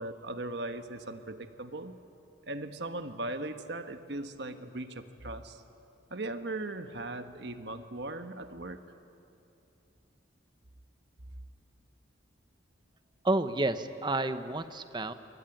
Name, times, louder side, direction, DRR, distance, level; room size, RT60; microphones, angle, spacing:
voice 1, 0.0-1.9 2.5-5.6 6.1-8.8, right 2 dB, 60° right, 8 dB, 1.3 m, -38 dB
voice 2, 13.2-15.1, right 2 dB, 25° right, 10 dB, 0.9 m, -30 dB
25.5 x 22.5 x 9.2 m, 2.8 s
head